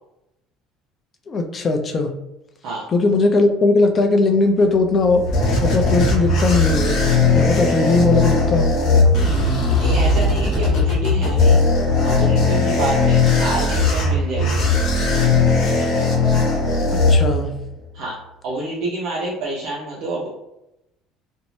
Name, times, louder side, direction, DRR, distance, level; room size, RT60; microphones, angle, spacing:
voice 1, 1.3-2.1 2.9-5.2 5.6-7.0 7.3-8.7 16.9-17.5, left 3 dB, 30° left, 4 dB, 0.4 m, -18 dB
sound 1, 4.8-17.7, left 2 dB, 60° left, 0.8 m, -18 dB
sound 2, 6.8-13.2, left 7 dB, 25° right, 1.0 m, -26 dB
voice 2, 9.8-11.6 12.0-14.6 17.9-18.2 18.4-20.3, right 2 dB, 65° right, -5 dB, 0.6 m, -27 dB
2.6 x 2.0 x 3.0 m, 0.88 s
cardioid pair, 135°, 0 cm